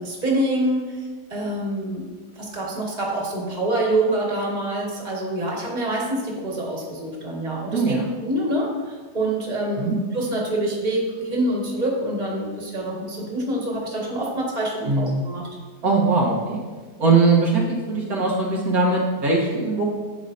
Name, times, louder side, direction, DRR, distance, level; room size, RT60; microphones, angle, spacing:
voice 1, 0.0-2.0 2.4-7.9 8.2-15.5, right 1 dB, 25° right, -3 dB, 1.8 m, -26 dB
voice 2, 7.7-8.0 9.8-9.9 14.9-15.3 15.8-16.6 17.0-19.8, right 3 dB, 65° right, -3 dB, 1.7 m, -20 dB
10.5 x 8.0 x 2.7 m, 1.4 s
omnidirectional pair, 1.7 m